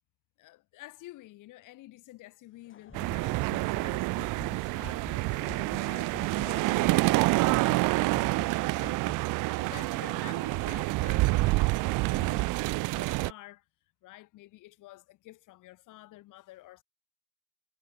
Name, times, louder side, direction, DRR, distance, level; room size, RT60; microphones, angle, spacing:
voice 1, 0.4-3.5 3.8-13.6 14.0-16.8, left 17 dB, 70° left, 5.2 m, -51 dB
Laughter / Crowd, 2.5-8.9, left 8 dB, 35° left, 3.4 m, -55 dB
sound 1, 2.9-5.8 6.1-8.5 8.8-9.2, left 3 dB, 10° left, 0.8 m, -46 dB
sound 2, 2.9-13.3, right 22 dB, 70° right, 0.7 m, -27 dB
cardioid pair, 120°, 33 cm